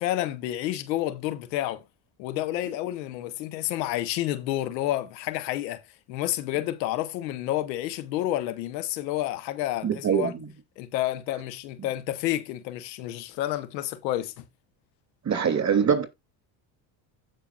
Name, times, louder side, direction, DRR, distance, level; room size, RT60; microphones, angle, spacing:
voice 1, 0.0-1.8 2.2-5.8 6.1-10.3 10.8-14.4, left 14 dB, 90° left, 1.0 m, -30 dB
voice 2, 9.8-10.4 15.2-16.0, right 7 dB, 35° right, 2.6 m, -23 dB
15.5 x 5.6 x 2.4 m
supercardioid pair, 80°, 50 cm